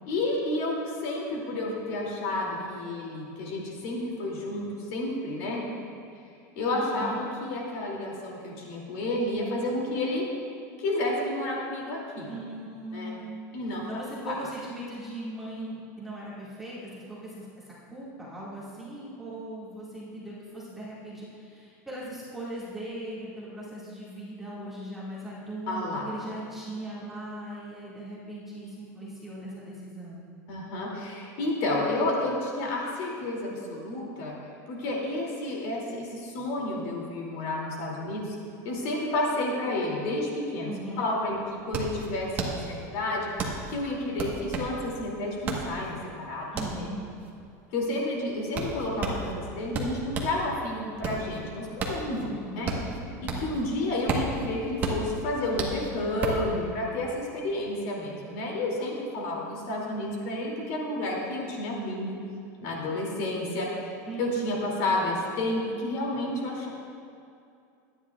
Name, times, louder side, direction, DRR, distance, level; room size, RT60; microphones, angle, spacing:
voice 1, 0.1-5.7 6.6-10.2 10.8-12.3 12.9-13.1 13.5-13.8 14.3-14.4 25.7-26.1 30.5-34.3 34.7-38.4 38.6-40.7 41.0-43.3 43.7-46.5 47.7-52.7 53.4-62.2 62.6-63.7 64.2-66.7, left 1 dB, 50° left, -2 dB, 2.6 m, -30 dB
voice 2, 6.7-7.3 12.3-13.3 13.7-17.5 17.9-30.3 40.7-41.1 46.5-47.1 52.3-53.7 58.7-58.8 64.1-64.2, right 1 dB, 5° right, -9 dB, 1.9 m, -39 dB
sound 1, 40.8-40.9 41.1-50.4 50.8-53.6 53.9-56.5, right 3 dB, 20° right, 1.2 m, -33 dB
24.0 x 10.0 x 2.4 m, 2.5 s
supercardioid pair, 180°, 9 cm